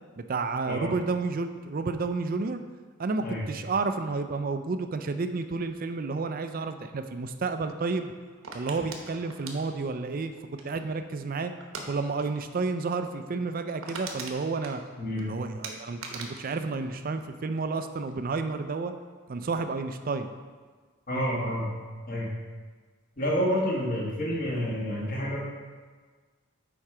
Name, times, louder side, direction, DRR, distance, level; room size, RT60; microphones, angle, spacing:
voice 1, 0.2-2.6 3.0-8.1 8.5-11.5 11.9-14.8 15.2-18.9 19.3-20.3, right 3 dB, 40° right, 8 dB, 0.4 m, -31 dB
sound 1, 8.4-11.0 11.6-11.9 12.2-12.4 12.7-12.8 13.2-13.3 13.5-15.2 15.6-17.7 18.0-18.4, right 4 dB, 70° right, 1.0 m, -41 dB
voice 2, 15.0-15.4 21.1-21.8 22.1-22.3 23.2-25.4, equal, 40° left, -4 dB, 1.5 m, -29 dB
7.3 x 4.5 x 4.8 m, 1.5 s
head